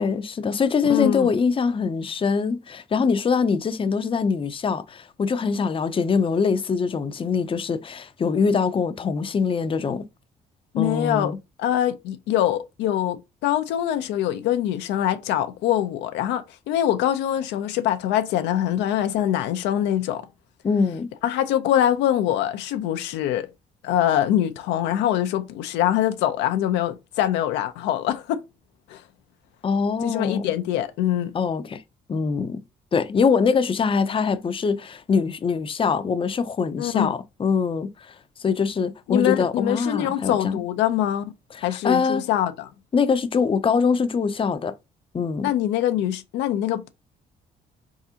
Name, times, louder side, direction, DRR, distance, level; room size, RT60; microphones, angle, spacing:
voice 1, 0.0-10.0 10.8-11.4 20.6-21.1 29.6-30.5 31.3-31.8 32.1-32.6 32.9-38.1 38.4-40.6 41.5-42.3 42.9-44.7 45.1-45.5, left 5 dB, 30° left, 0.5 m, -23 dB
voice 2, 0.9-1.3 10.7-11.3 11.6-20.3 21.2-23.5 23.8-28.4 28.9-29.0 30.0-31.3 36.8-37.1 39.1-41.3 41.6-42.7 45.4-46.9, left 11 dB, 80° left, 0.5 m, -24 dB
4.0 x 3.6 x 2.7 m
supercardioid pair, 65°, 18 cm